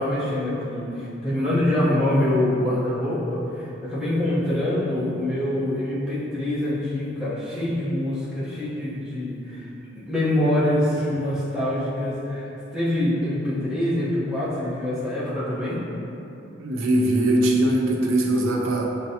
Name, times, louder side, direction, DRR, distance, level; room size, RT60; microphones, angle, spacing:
voice 1, 0.0-9.7 9.9-15.8, left 1 dB, 5° right, -11 dB, 0.8 m, -25 dB
voice 2, 16.6-18.8, right 1 dB, 90° right, 0 dB, 0.5 m, -21 dB
6.4 x 2.2 x 2.8 m, 2.9 s
head